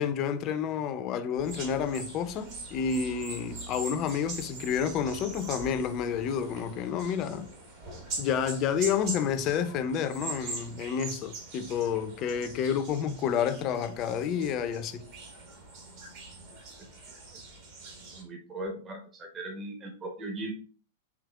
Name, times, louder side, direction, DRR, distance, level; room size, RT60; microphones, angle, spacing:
voice 1, 0.0-7.5 8.2-15.0, left 7 dB, 35° left, 0.5 m, -30 dB
sound 1, 1.4-18.2, right 3 dB, 45° right, 1.3 m, -42 dB
voice 2, 18.1-20.5, right 2 dB, 25° right, 0.9 m, -38 dB
4.9 x 3.0 x 2.3 m
figure-of-eight pair, 100°, 0 cm